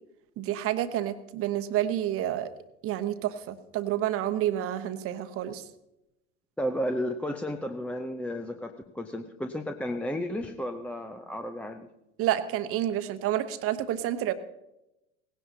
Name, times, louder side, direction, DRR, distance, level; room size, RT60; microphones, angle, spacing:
voice 1, 0.4-2.5 2.8-5.6 12.2-14.3, right 12 dB, 35° right, 10 dB, 1.0 m, -29 dB
voice 2, 6.6-11.9, equal, 5° left, 6 dB, 0.6 m, -33 dB
18.0 x 16.5 x 2.8 m, 0.93 s
figure-of-eight pair, 80°, 37 cm